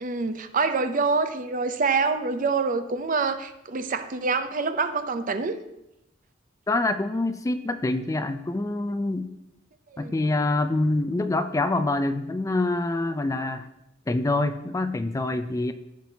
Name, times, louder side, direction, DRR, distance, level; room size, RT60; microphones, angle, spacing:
voice 1, 0.0-5.6 9.9-10.1, right 4 dB, 45° right, 10 dB, 0.6 m, -26 dB
voice 2, 6.7-9.3 10.0-13.7 14.1-15.7, left 2 dB, 15° left, 9 dB, 0.4 m, -26 dB
14.5 x 6.0 x 2.8 m, 0.87 s
head